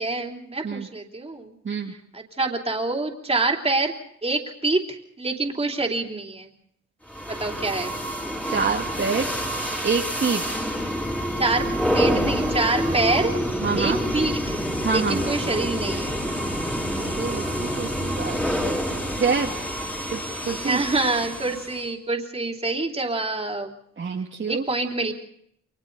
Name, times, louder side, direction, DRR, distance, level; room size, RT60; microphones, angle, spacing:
voice 1, 0.0-1.5 2.1-3.9 4.2-6.5 7.3-7.9 11.4-11.7 11.9-13.3 13.7-16.2 20.6-23.7 24.5-25.1, right 2 dB, 20° right, 1 dB, 3.3 m, -26 dB
sound 1, 7.1-21.9, equal, 5° left, 3.9 m, -27 dB
voice 2, 8.5-9.3 9.8-10.6 13.6-14.0 14.8-15.2 17.0-19.5 20.1-20.8 24.0-24.7, right 5 dB, 40° right, -1 dB, 2.0 m, -27 dB
29.5 x 23.0 x 4.0 m, 0.71 s
cardioid pair, 110°, 29 cm